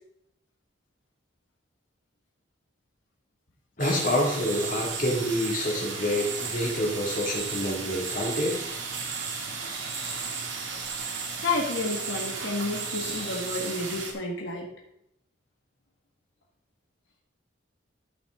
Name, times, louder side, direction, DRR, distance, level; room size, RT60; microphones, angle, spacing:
voice 1, 3.8-8.6, left 1 dB, 45° left, -2 dB, 2.5 m, -27 dB
sound 1, 3.8-14.1, right 5 dB, 80° right, 1.8 m, -34 dB
voice 2, 11.4-14.7, left 2 dB, 85° left, -1 dB, 1.8 m, -30 dB
13.0 x 5.8 x 3.8 m, 0.78 s
head